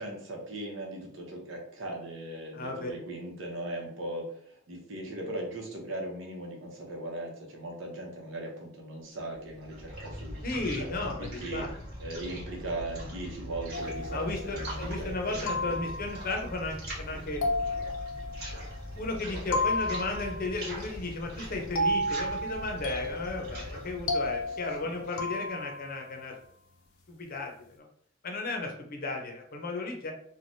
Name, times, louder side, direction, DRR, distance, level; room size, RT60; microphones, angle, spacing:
voice 1, 0.0-10.4 10.8-10.9 11.2-11.6 12.0-15.8 24.5-24.6, right 1 dB, 70° right, 0 dB, 0.8 m, -39 dB
voice 2, 2.5-2.9 10.4-11.7 14.1-17.4 18.9-26.3 27.1-27.8 28.2-30.1, left 2 dB, 45° left, 2 dB, 0.6 m, -35 dB
sound 1, 9.3-25.3, equal, 55° right, 1.4 m, -41 dB
sound 2, 13.7-14.8 15.5-16.4 17.4-19.0 19.5-20.7 21.8-26.0, left 1 dB, 90° left, 0.5 m, -33 dB
3.2 x 2.2 x 2.6 m, 0.62 s
head